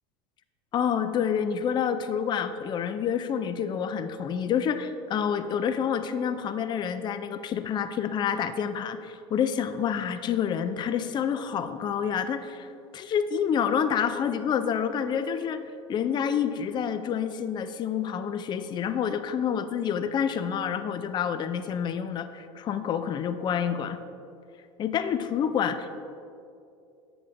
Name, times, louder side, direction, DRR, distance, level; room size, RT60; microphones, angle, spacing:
voice 1, 0.7-15.6 15.9-24.0 24.8-25.9, left 8 dB, 30° left, 10 dB, 0.4 m, -28 dB
7.7 x 7.7 x 2.5 m, 2.5 s
hypercardioid pair, 95°, 14 cm